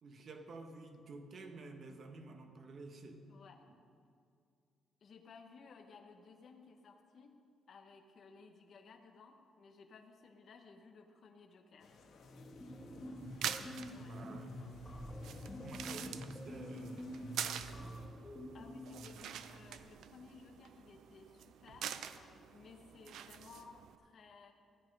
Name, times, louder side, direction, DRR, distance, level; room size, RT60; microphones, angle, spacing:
voice 1, 0.0-3.2 12.9-13.5 14.0-14.6 15.6-18.0, right 3 dB, 55° right, 5 dB, 1.2 m, -52 dB
voice 2, 3.3-3.6 5.0-7.3 7.7-11.9 13.9-14.2 18.5-24.5, left 4 dB, 55° left, 4 dB, 1.0 m, -58 dB
sound 1, 11.8-18.1, left 4 dB, 75° left, 1.5 m, -61 dB
sound 2, 12.2-19.3, left 1 dB, 15° left, 1.5 m, -47 dB
sound 3, 13.2-24.0, right 9 dB, 75° right, 0.5 m, -46 dB
14.0 x 9.0 x 5.3 m, 2.4 s
cardioid pair, 90°, 0 cm